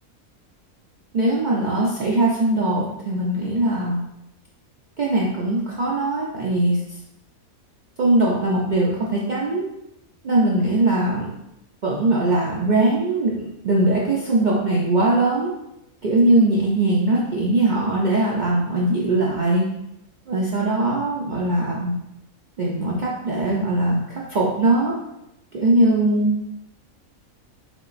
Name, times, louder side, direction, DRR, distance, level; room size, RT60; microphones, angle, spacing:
voice 1, 1.1-4.0 5.0-6.8 8.0-9.6 10.2-11.3 11.8-15.5 16.0-19.7 20.3-22.0 22.6-25.0 25.5-26.4, right 2 dB, 80° right, -4 dB, 0.4 m, -20 dB
3.8 x 3.7 x 2.5 m, 0.88 s
omnidirectional pair, 1.5 m